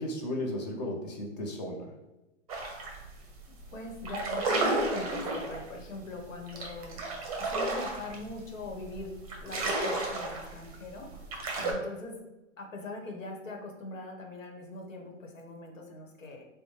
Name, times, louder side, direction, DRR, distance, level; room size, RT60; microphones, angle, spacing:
voice 1, 0.0-2.0 11.5-11.8, left 1 dB, 35° left, 0 dB, 0.7 m, -35 dB
sound 1, 2.5-3.0 3.3-3.6 3.9-11.7, right 2 dB, 30° right, 0.6 m, -32 dB
voice 2, 3.7-7.0 7.4-9.1 9.4-11.1 11.7-12.1 12.6-16.5, left 2 dB, 80° left, 2 dB, 1.1 m, -41 dB
4.3 x 2.1 x 3.0 m, 1.0 s
hypercardioid pair, 160°, 38 cm